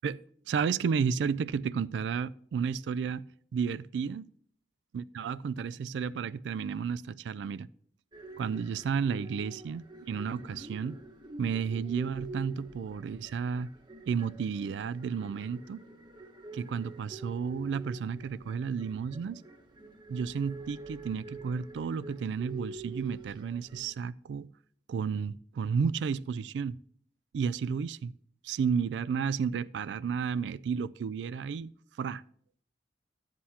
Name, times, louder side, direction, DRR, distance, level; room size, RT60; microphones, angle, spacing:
voice 1, 0.5-3.2 3.5-4.3 4.9-7.7 8.4-11.0 11.4-13.7 14.1-15.8 16.5-19.4 20.1-24.5 24.9-26.8 27.3-28.1 28.4-31.7 32.0-32.2, right 6 dB, 85° right, 0.3 m, -32 dB
sound 1, 8.1-23.9, right 2 dB, 25° right, 0.9 m, -47 dB
12.5 x 7.6 x 2.8 m
head